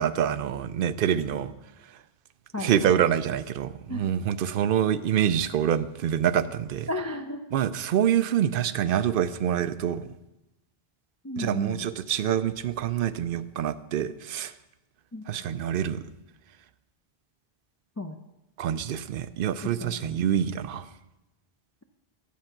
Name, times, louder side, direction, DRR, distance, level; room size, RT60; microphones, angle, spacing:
voice 1, 0.0-1.5 2.6-6.9 7.5-10.1 11.4-14.5 15.3-16.0 18.6-20.9, right 9 dB, 65° right, 0.7 m, -26 dB
voice 2, 2.5-3.0 3.9-4.1 6.9-7.5 11.2-11.9 15.1-15.2 18.0-18.2 19.8-20.2, left 1 dB, 25° left, 0.4 m, -34 dB
10.5 x 7.8 x 5.8 m
omnidirectional pair, 1.0 m